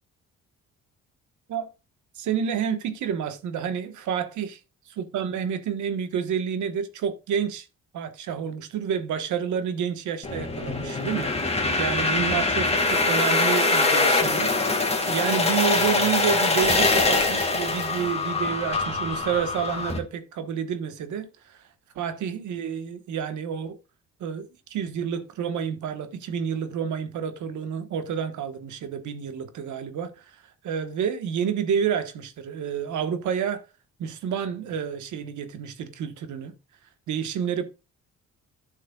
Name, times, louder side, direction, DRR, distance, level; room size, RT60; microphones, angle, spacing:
voice 1, 2.1-4.6 5.0-7.7 7.9-21.6 21.9-23.8 24.2-33.6 34.0-36.5 37.1-37.6, right 7 dB, 75° right, 1.2 m, -29 dB
sound 1, 10.2-20.0, left 3 dB, 20° left, 2.0 m, -23 dB
11.5 x 6.4 x 2.3 m
cardioid pair, 90°, 30 cm